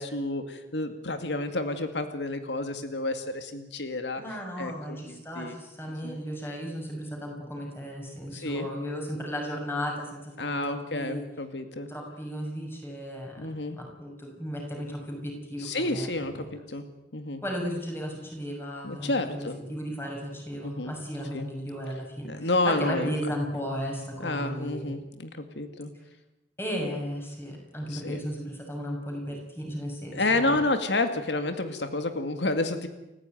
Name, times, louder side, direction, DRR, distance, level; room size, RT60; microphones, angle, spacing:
voice 1, 0.0-4.2 4.6-5.5 6.0-6.2 8.3-8.7 10.4-11.9 13.4-13.8 15.6-16.8 17.1-17.4 18.8-19.6 20.6-20.9 21.3-21.4 22.2-23.1 24.2-25.9 27.9-28.2 30.1-32.9, left 2 dB, 90° left, 8 dB, 2.2 m, -30 dB
voice 2, 4.2-11.2 11.9-16.5 17.4-25.0 26.6-30.6, equal, 15° left, 0 dB, 6.3 m, -35 dB
30.0 x 15.0 x 9.3 m, 1.0 s
head